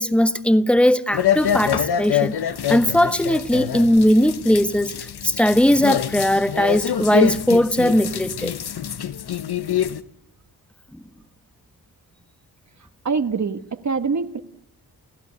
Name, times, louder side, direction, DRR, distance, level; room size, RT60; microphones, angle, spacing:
voice 1, 0.0-2.3 2.7-4.9 5.2-8.5, equal, 5° left, 1.4 m, -18 dB
sound 1, 1.1-10.0, left 9 dB, 70° left, 1.3 m, -25 dB
voice 2, 13.1-14.4, right 5 dB, 45° right, 1.6 m, -24 dB
29.0 x 15.5 x 9.8 m
wide cardioid pair, 100°, 40 cm